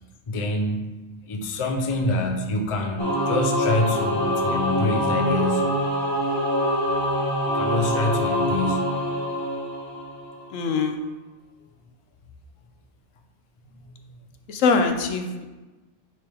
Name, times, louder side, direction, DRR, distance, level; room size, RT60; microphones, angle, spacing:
voice 1, 0.3-0.8 1.3-5.7 7.5-8.9 13.6-13.9, left 2 dB, 40° left, 3 dB, 0.4 m, -26 dB
Singing / Musical instrument, 3.0-10.5, equal, 20° left, 1.2 m, -25 dB
voice 2, 10.5-11.0 14.5-15.5, left 4 dB, 75° left, 5 dB, 1.0 m, -22 dB
9.2 x 3.4 x 3.4 m, 1.2 s
omnidirectional pair, 1.3 m